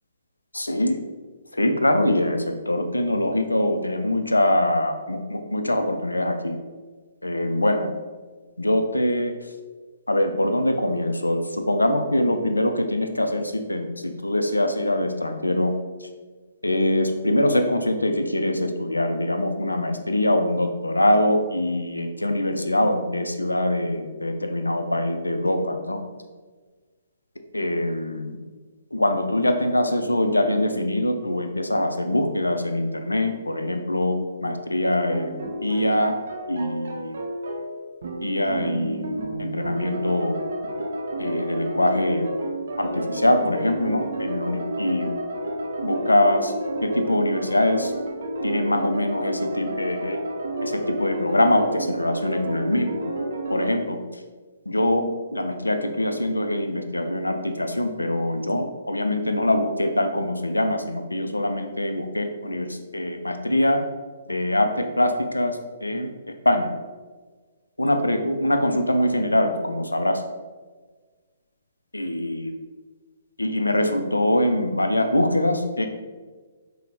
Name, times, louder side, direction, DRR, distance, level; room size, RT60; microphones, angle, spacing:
voice 1, 0.5-1.0 1.5-6.6 7.2-7.9 8.6-9.3 10.1-16.1 16.6-26.0 27.5-28.4 28.9-36.2 36.5-37.2 38.2-40.4 41.2-42.3 42.8-45.1 45.8-46.5 46.8-47.9 48.4-50.2 50.6-53.0 53.5-54.0 54.7-63.8 64.3-66.1 66.5-66.7 67.8-70.2 71.9-72.5 73.4-75.9, left 1 dB, 85° left, 7 dB, 0.3 m, -23 dB
sound 1, 35.1-53.8, right 1 dB, 60° right, 0.5 m, -30 dB
5.0 x 2.1 x 2.8 m, 1.4 s
figure-of-eight pair, 125°, 0 cm